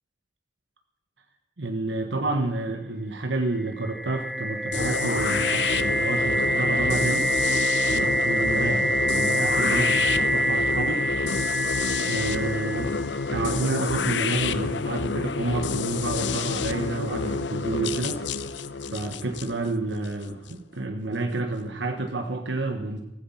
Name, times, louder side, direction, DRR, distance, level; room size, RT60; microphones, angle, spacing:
voice 1, 1.6-7.3 7.9-11.0 12.0-12.9 13.3-18.2 18.9-23.0, right 2 dB, 75° right, 5 dB, 1.4 m, -29 dB
sound 1, 3.6-13.4, equal, ahead, 1.3 m, -26 dB
sound 2, 4.7-20.5, left 4 dB, 75° left, 0.8 m, -28 dB
16.0 x 15.0 x 5.8 m, 0.90 s
head